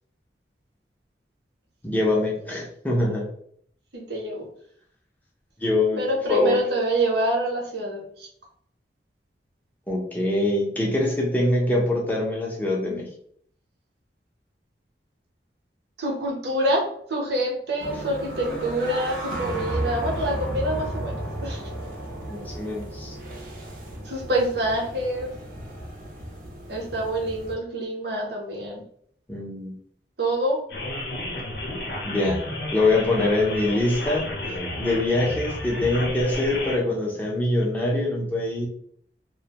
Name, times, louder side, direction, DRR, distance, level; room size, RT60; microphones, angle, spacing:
voice 1, 1.8-3.3 5.6-6.0 6.3-6.6 9.9-13.1 22.3-23.1 29.3-29.8 32.0-32.4 32.7-38.7, left 2 dB, 10° left, -3 dB, 0.5 m, -24 dB
voice 2, 3.9-4.5 6.0-8.3 16.0-21.6 24.0-25.3 26.7-28.8 30.2-30.6, right 1 dB, 75° right, -1 dB, 0.8 m, -26 dB
sound 1, 17.8-27.5, right 1 dB, 50° right, 0.5 m, -34 dB
sound 2, 30.7-36.8, left 1 dB, 65° left, 0.6 m, -32 dB
2.4 x 2.1 x 2.8 m, 0.63 s
head